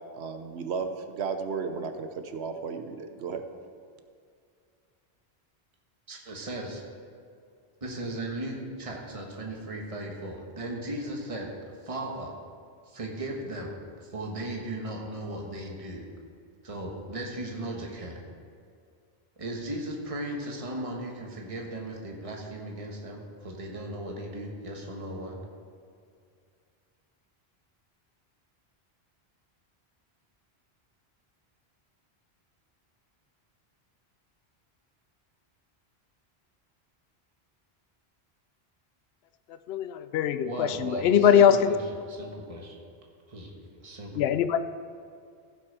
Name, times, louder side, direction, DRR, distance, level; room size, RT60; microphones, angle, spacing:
voice 1, 0.1-3.4, right 5 dB, 80° right, 7 dB, 1.1 m, -34 dB
voice 2, 6.1-6.8 7.8-11.5 11.8-12.3 12.9-16.0 16.6-18.2 19.4-25.4 40.4-41.8 42.1-42.8 43.3-43.5 43.8-44.2, right 1 dB, 30° right, 0 dB, 1.4 m, -37 dB
voice 3, 39.7-41.7 44.2-44.6, left 8 dB, 75° left, 12 dB, 0.8 m, -22 dB
15.5 x 6.0 x 4.8 m, 2.3 s
omnidirectional pair, 1.1 m